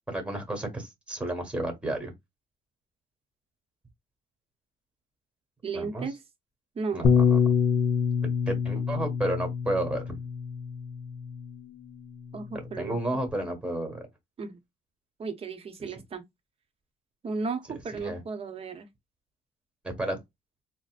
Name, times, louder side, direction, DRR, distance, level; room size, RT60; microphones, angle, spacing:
voice 1, 0.1-2.1 5.7-6.1 6.9-7.4 8.5-10.1 12.5-14.1 15.8-15.9 17.7-18.2 19.8-20.2, right 1 dB, 5° right, 1.4 m, -32 dB
voice 2, 5.6-6.2 6.8-7.0 12.3-13.2 14.4-14.6 15.2-16.2 17.2-18.9, right 4 dB, 35° right, 0.8 m, -34 dB
Bass guitar, 7.0-11.6 12.3-13.3, left 6 dB, 45° left, 0.6 m, -26 dB
4.0 x 2.0 x 2.4 m
cardioid pair, 110°, 17 cm